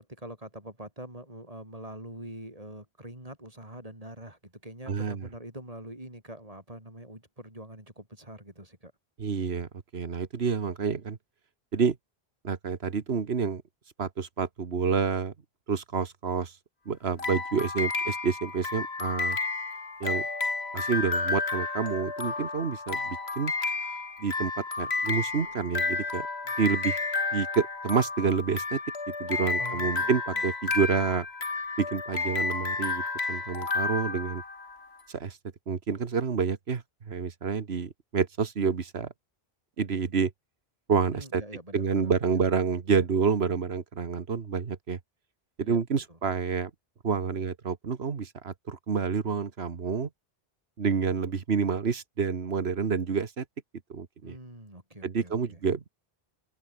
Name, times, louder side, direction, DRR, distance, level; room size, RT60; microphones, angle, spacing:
voice 1, 0.0-8.9 29.6-30.4 41.1-42.4 45.6-45.8 46.1-46.2 54.2-55.6, right 1 dB, 35° right, 7.1 m, -44 dB
voice 2, 4.9-5.2 9.2-11.2 11.7-12.0 12.4-13.6 14.0-15.3 15.7-16.5 16.9-19.4 20.0-20.3 20.7-23.5 24.2-26.3 26.6-27.0 27.3-28.8 29.2-31.3 31.8-34.4 35.1-35.4 35.7-39.1 39.8-40.3 40.9-41.4 41.7-45.0 45.6-46.7 47.0-50.1 50.8-53.5 53.9-54.4 55.0-55.9, right 5 dB, 85° right, 1.7 m, -28 dB
sound 1, 17.2-34.9, left 3 dB, 90° left, 2.7 m, -31 dB
open air
omnidirectional pair, 1.0 m